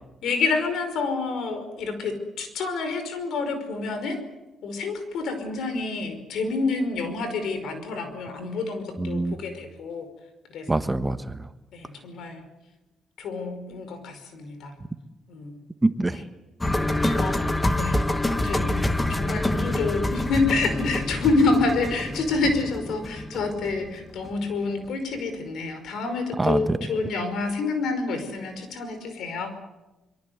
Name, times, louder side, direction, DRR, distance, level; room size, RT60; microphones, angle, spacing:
voice 1, 0.2-4.2 4.6-10.1 10.5-10.7 11.7-12.4 13.2-14.7 15.3-15.6 17.1-18.8 19.1-29.6, left 3 dB, 75° left, 8 dB, 5.2 m, -28 dB
voice 2, 9.0-9.4 10.7-11.5 15.8-16.2 17.0-17.1 26.4-26.8, right 2 dB, 15° right, 10 dB, 1.3 m, -24 dB
sound 1, 16.6-24.6 24.8-24.9, left 1 dB, 15° left, 1.6 m, -27 dB
24.5 x 23.0 x 8.1 m, 1.0 s
cardioid pair, 90°, 0 cm